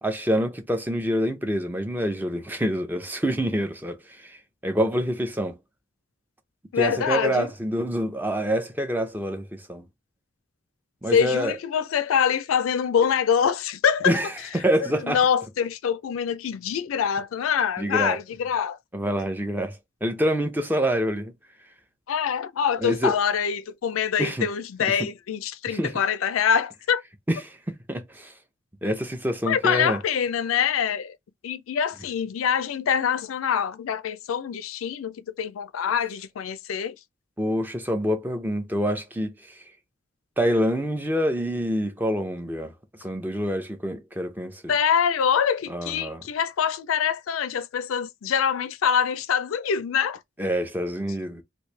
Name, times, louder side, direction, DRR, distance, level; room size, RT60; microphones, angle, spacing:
voice 1, 0.0-5.6 6.8-9.8 11.0-11.6 14.1-15.2 17.8-18.2 18.9-21.3 22.8-23.1 24.2-24.5 24.8-25.0 25.7-26.0 27.3-28.3 28.8-30.0 37.4-39.6 40.4-42.7 43.0-44.7 45.7-46.2 50.4-51.4, equal, 10° right, 0.6 m, -26 dB
voice 2, 6.7-7.5 11.1-14.1 14.8-18.8 22.1-27.0 29.5-31.1 31.4-37.0 44.7-50.2, left 7 dB, 90° left, 0.4 m, -25 dB
3.1 x 2.6 x 3.2 m
head